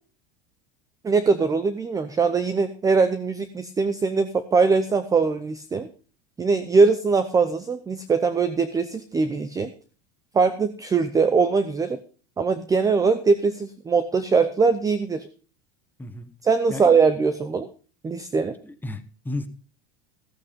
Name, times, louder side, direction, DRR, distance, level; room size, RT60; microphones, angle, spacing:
voice 1, 1.0-5.9 6.4-9.7 10.3-12.0 12.4-15.3 16.4-17.7 18.0-18.5, right 4 dB, 10° right, 12 dB, 0.6 m, -21 dB
voice 2, 16.0-16.3 16.7-16.9 18.6-19.5, left 2 dB, 5° left, 8 dB, 1.1 m, -33 dB
15.0 x 8.2 x 5.2 m, 0.37 s
supercardioid pair, 155°, 30 cm